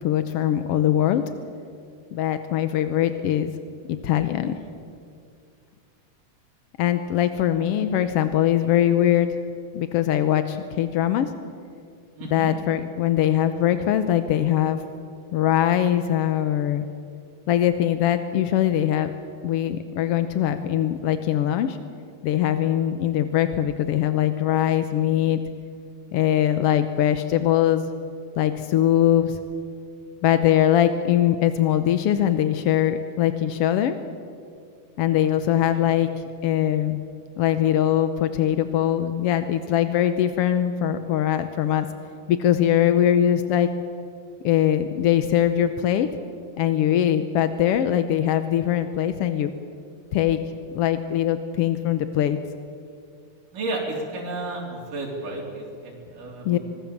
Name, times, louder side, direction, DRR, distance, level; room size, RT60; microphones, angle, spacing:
voice 1, 0.0-1.2 2.1-3.5 3.9-4.6 6.8-9.4 9.7-11.3 12.3-14.8 15.3-16.9 17.5-19.1 19.4-21.8 22.2-25.4 26.1-27.9 28.4-29.4 30.2-34.0 35.0-36.1 36.4-37.0 37.4-41.9 42.3-43.7 44.4-46.1 46.6-49.5 50.1-50.4 50.7-52.4 56.4-56.6, left 11 dB, 75° left, 10 dB, 1.4 m, -21 dB
voice 2, 12.2-12.5 35.7-36.1 53.5-56.6, right 2 dB, 85° right, -2 dB, 5.1 m, -32 dB
25.0 x 20.0 x 7.2 m, 2.3 s
omnidirectional pair, 3.7 m